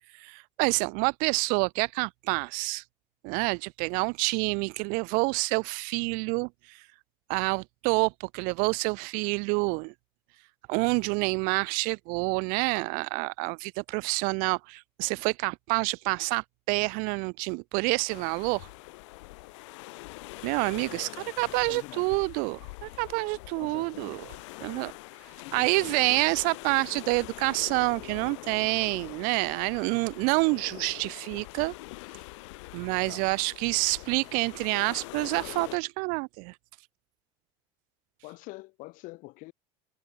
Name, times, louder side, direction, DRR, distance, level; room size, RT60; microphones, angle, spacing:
voice 1, 0.2-2.8 3.2-6.5 7.3-9.9 10.7-18.7 20.4-21.1 21.4-24.2 24.6-24.9 25.5-31.7 32.7-36.5, right 32 dB, 70° right, 0.5 m, -28 dB
sound 1, 18.1-35.8, left 24 dB, 85° left, 1.4 m, -44 dB
voice 2, 20.9-22.2 23.5-24.2 25.4-25.9 33.1-33.4 38.2-39.5, left 23 dB, 65° left, 2.6 m, -46 dB
supercardioid pair, 125°, 15 cm